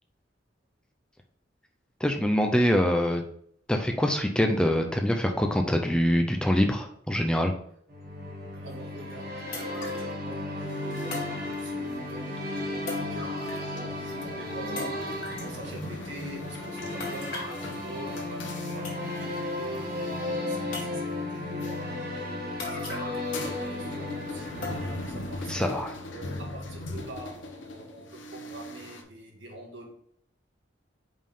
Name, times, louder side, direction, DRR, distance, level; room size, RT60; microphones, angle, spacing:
voice 1, 2.0-3.2 3.7-7.5 25.5-25.9, equal, 5° left, 3 dB, 0.4 m, -24 dB
sound 1, 7.9-25.6, left 2 dB, 50° right, 1.4 m, -35 dB
voice 2, 8.5-19.9 20.3-22.1 22.7-25.8 26.1-29.9, right 1 dB, 80° right, -1 dB, 1.9 m, -44 dB
sound 2, 8.7-8.8 9.5-10.1 11.1-12.0 12.9-13.8 14.1-14.2 14.8-15.5 17.0-17.7 18.5-18.6 18.8-19.4 19.7-19.8 20.7-21.3 22.6-23.4 23.7-23.8 24.6-25.1 25.6-25.7 26.3-26.4, left 3 dB, 50° left, 2.3 m, -39 dB
sound 3, 10.6-29.0, left 2 dB, 85° left, 0.9 m, -41 dB
5.3 x 3.6 x 5.3 m, 0.66 s
head